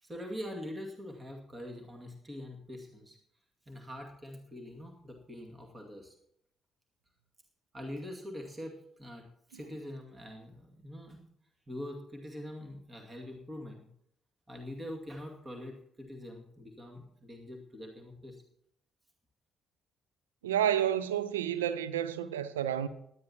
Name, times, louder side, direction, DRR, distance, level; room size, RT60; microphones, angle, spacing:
voice 1, 0.0-3.2 3.7-6.1 7.7-11.3 11.7-13.9 14.5-18.4, left 1 dB, 20° right, 2.3 m, -44 dB
voice 2, 20.4-22.9, right 10 dB, 80° right, 0.5 m, -30 dB
18.5 x 12.0 x 2.9 m
figure-of-eight pair, 45°, 0 cm